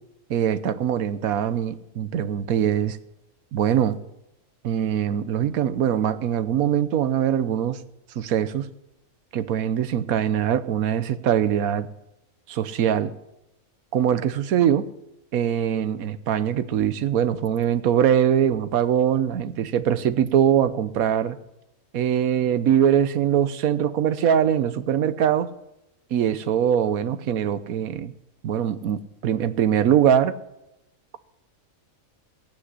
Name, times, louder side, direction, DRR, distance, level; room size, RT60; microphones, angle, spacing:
voice 1, 0.3-3.0 3.5-4.0 4.6-7.8 8.2-8.7 9.3-11.9 12.5-13.1 13.9-14.8 15.3-21.4 21.9-25.5 26.1-28.1 28.4-30.3, right 9 dB, 80° right, 14 dB, 1.3 m, -22 dB
16.5 x 8.8 x 9.8 m, 0.91 s
omnidirectional pair, 1.5 m